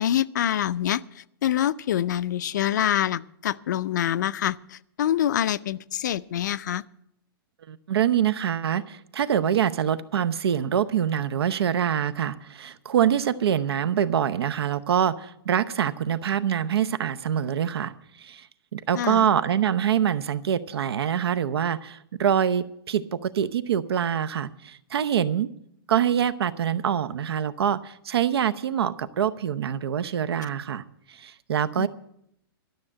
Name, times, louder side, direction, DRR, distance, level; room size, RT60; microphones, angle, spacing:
voice 1, 0.0-6.8 18.9-19.3 31.8-31.9, left 11 dB, 50° left, 18 dB, 0.4 m, -26 dB
voice 2, 7.7-17.9 18.2-18.5 18.7-25.5 25.9-31.9, right 9 dB, 85° right, 15 dB, 0.8 m, -25 dB
12.5 x 6.5 x 9.7 m, 0.74 s
hypercardioid pair, 175°, 13 cm